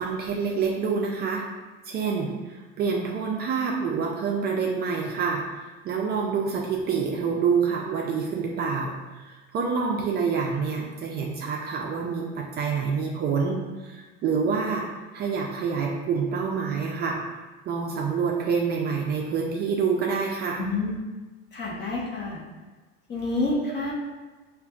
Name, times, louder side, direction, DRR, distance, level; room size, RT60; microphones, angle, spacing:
voice 1, 0.0-1.4 1.9-5.4 5.8-14.9 15.1-17.2 17.7-20.6, right 5 dB, 35° right, -1 dB, 0.4 m, -27 dB
voice 2, 20.6-21.0 21.5-22.4 23.1-23.9, left 2 dB, 35° left, -4 dB, 1.0 m, -28 dB
5.3 x 2.5 x 2.3 m, 1.2 s
supercardioid pair, 125°, 30 cm